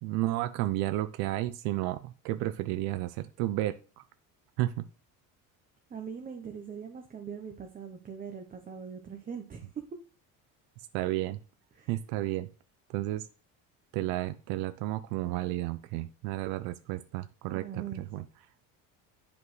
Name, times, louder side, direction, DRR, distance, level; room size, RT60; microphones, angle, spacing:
voice 1, 0.0-4.0 4.6-4.9 10.9-11.4 11.9-12.5 12.9-13.2 13.9-18.2, right 16 dB, 90° right, 12 dB, 0.5 m, -32 dB
voice 2, 5.9-9.7 11.7-11.9 17.5-18.0, right 7 dB, 25° right, 4 dB, 0.8 m, -41 dB
8.2 x 5.2 x 3.2 m, 0.37 s
cardioid pair, 140°, 35 cm